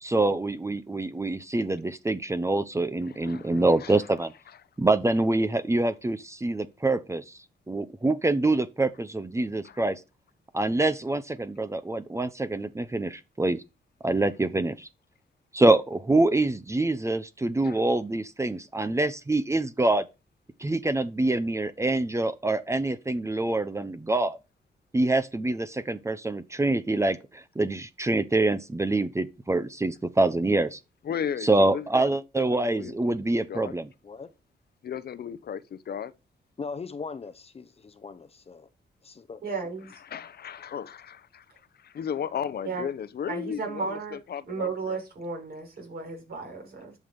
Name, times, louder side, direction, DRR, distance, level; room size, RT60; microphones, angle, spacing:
voice 1, 0.0-4.3 4.8-7.4 7.7-9.9 10.5-13.6 14.0-14.9 15.5-20.1 20.6-24.4 24.9-30.8 31.4-33.9, right 2 dB, 15° right, 0.8 m, -25 dB
voice 2, 3.0-4.0 4.5-4.6 9.6-9.8 17.6-17.8 31.0-33.7 34.8-36.1 39.9-41.4 41.8-45.0, left 8 dB, 60° left, 0.9 m, -36 dB
voice 3, 36.6-38.7 39.0-39.4, left 4 dB, 35° left, 0.8 m, -39 dB
voice 4, 39.4-39.9 42.6-42.8 43.3-44.2 44.5-46.9, right 4 dB, 55° right, 6.0 m, -34 dB
11.0 x 6.2 x 5.3 m
cardioid pair, 120°, 18 cm